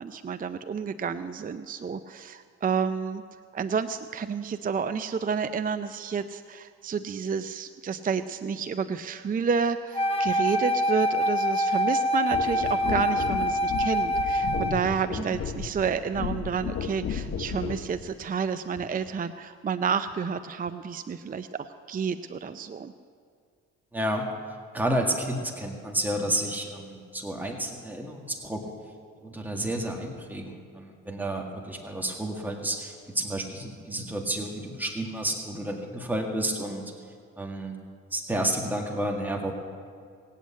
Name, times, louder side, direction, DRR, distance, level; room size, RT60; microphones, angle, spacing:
voice 1, 0.0-3.2 3.5-22.9, right 6 dB, 30° right, 11 dB, 0.5 m, -30 dB
Wind instrument woodwind instrument, 9.9-14.8, equal, 20° left, 1.1 m, -25 dB
sound 1, 12.3-17.9 18.7-18.9, left 6 dB, 50° left, 1.2 m, -34 dB
voice 2, 23.9-24.2 24.7-28.7 29.2-36.9 37.4-37.8 38.1-39.5, right 1 dB, 5° right, 1 dB, 1.9 m, -31 dB
19.0 x 8.3 x 8.4 m, 2.2 s
cardioid pair, 90°, 30 cm